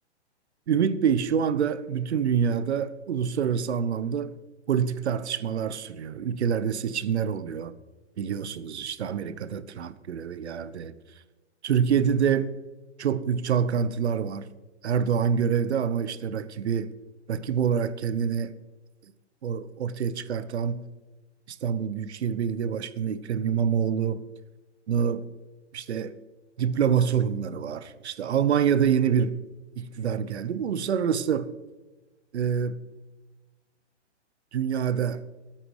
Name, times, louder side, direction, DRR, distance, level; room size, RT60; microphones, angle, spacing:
voice 1, 0.7-4.4 4.7-7.7 8.2-10.9 11.6-12.5 13.0-14.5 14.8-16.9 17.3-18.6 19.4-20.9 21.5-24.2 24.9-25.3 25.7-26.2 26.6-29.4 29.8-31.5 32.3-32.8 34.5-35.2, right 7 dB, 65° right, 1.1 m, -26 dB
25.0 x 8.9 x 3.3 m
hypercardioid pair, 130°, 35 cm